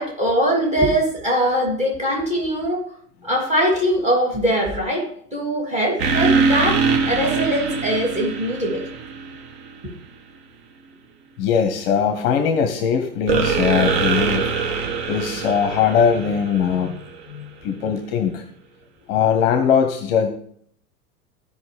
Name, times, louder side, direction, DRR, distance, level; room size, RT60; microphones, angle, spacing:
voice 1, 0.0-2.9 3.2-6.8 7.1-8.8, equal, 15° right, -2 dB, 2.9 m, -21 dB
sound 1, 6.0-9.7 13.3-17.2, right 5 dB, 45° right, 1.2 m, -23 dB
voice 2, 11.4-14.5 15.1-17.0 17.3-18.4 19.1-20.3, left 7 dB, 40° left, 7 dB, 0.8 m, -20 dB
14.0 x 5.1 x 3.3 m, 0.64 s
figure-of-eight pair, 90°, 45 cm